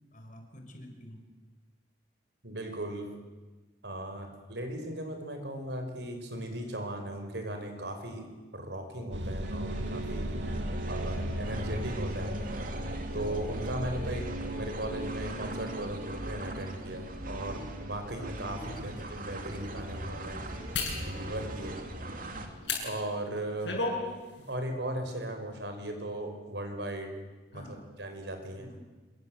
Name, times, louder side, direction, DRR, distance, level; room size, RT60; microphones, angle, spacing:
voice 1, 0.1-1.2 18.8-18.9 27.5-27.9 28.6-28.8, equal, 45° left, 4 dB, 5.0 m, -48 dB
voice 2, 2.4-3.1 3.8-8.3 8.5-10.3 10.9-12.4 13.1-20.4 21.0-21.8 22.8-23.8 24.5-27.1 27.5-28.7, right 1 dB, 70° right, 5 dB, 5.3 m, -37 dB
sound 1, 9.1-23.1, right 1 dB, 85° right, 2.3 m, -38 dB
sound 2, 9.4-22.5, right 1 dB, 50° right, 2.9 m, -42 dB
sound 3, 17.9-18.0 18.6-18.8 20.7-21.0 22.6-22.8 23.4-24.0 24.4-24.5, left 3 dB, 80° left, 7.7 m, -31 dB
27.0 x 23.5 x 7.9 m, 1.2 s
head